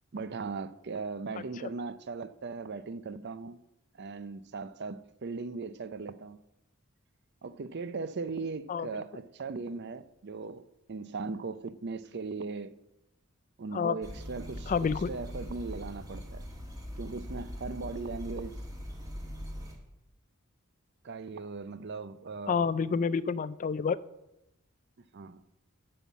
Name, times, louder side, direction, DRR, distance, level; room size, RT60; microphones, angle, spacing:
voice 1, 0.1-3.6 4.0-6.4 7.4-10.6 10.9-12.7 13.6-16.5 17.0-18.6 21.0-22.7 25.1-25.4, right 4 dB, 55° right, 0.6 m, -38 dB
sound 1, 14.0-19.8, equal, 15° right, 1.7 m, -41 dB
voice 2, 14.7-15.1 22.5-24.0, left 5 dB, 35° left, 0.4 m, -28 dB
11.5 x 5.6 x 8.2 m
head